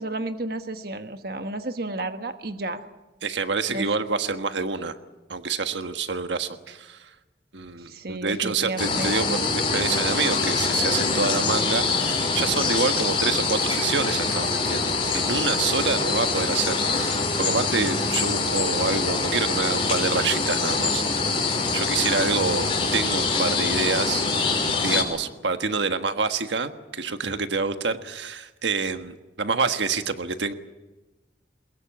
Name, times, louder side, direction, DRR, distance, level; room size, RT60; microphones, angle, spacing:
voice 1, 0.0-2.8 3.7-3.9 7.8-9.1, right 2 dB, 55° right, 8 dB, 1.3 m, -32 dB
voice 2, 3.2-4.9 5.3-7.1 7.5-21.4 21.7-24.5 24.8-30.5, right 4 dB, 90° right, 8 dB, 1.4 m, -27 dB
sound 1, 8.8-25.0, left 4 dB, 30° left, 5.8 m, -24 dB
22.5 x 21.5 x 8.8 m, 1.1 s
head